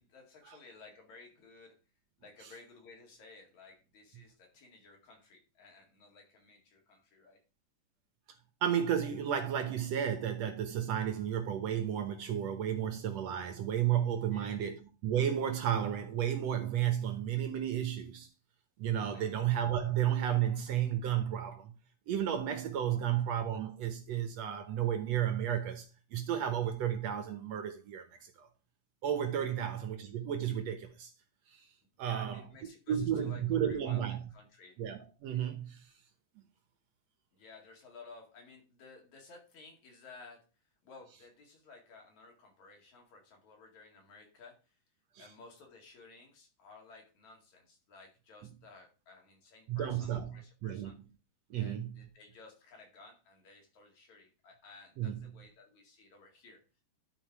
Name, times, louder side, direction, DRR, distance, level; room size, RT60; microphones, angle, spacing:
voice 1, 0.0-1.8 2.2-7.4 14.3-14.7 19.1-19.4 22.9-23.1 29.6-29.8 32.0-34.8 37.3-44.8 45.2-51.0 51.5-56.6, left 3 dB, 60° left, 3.4 m, -56 dB
voice 2, 8.6-18.3 18.8-21.7 22.1-28.5 29.0-31.1 31.5-31.6 32.0-32.4 32.9-34.3 34.8-35.9 45.2-45.3 49.7-50.3 50.6-50.9 51.5-52.0 55.0-55.3, right 10 dB, 65° right, 1.8 m, -32 dB
11.5 x 4.3 x 4.7 m
omnidirectional pair, 3.8 m